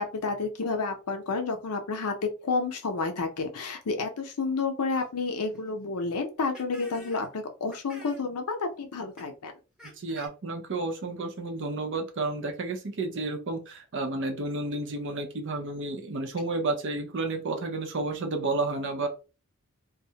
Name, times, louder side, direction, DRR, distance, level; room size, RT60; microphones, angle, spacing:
voice 1, 0.0-9.5, left 4 dB, 85° left, 5 dB, 0.6 m, -30 dB
sound 1, 4.9-5.1 5.5-5.6 6.4-7.3 7.7-8.3 9.2-9.3 9.8-10.3, right 1 dB, 5° right, 0.6 m, -48 dB
voice 2, 10.0-19.1, right 2 dB, 55° right, 5 dB, 0.6 m, -31 dB
2.2 x 2.1 x 2.7 m, 0.32 s
head